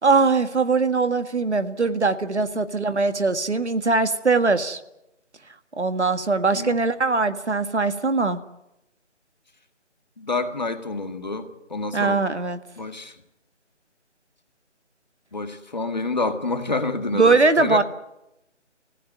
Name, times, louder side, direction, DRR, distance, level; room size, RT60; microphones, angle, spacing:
voice 1, 0.0-4.8 5.8-8.4 11.9-12.6 17.1-17.8, right 3 dB, 65° right, 10 dB, 1.8 m, -21 dB
voice 2, 10.2-12.2 12.8-13.2 15.3-17.8, left 3 dB, 35° left, 7 dB, 1.8 m, -28 dB
26.0 x 16.0 x 9.4 m, 0.90 s
figure-of-eight pair, 175°, 36 cm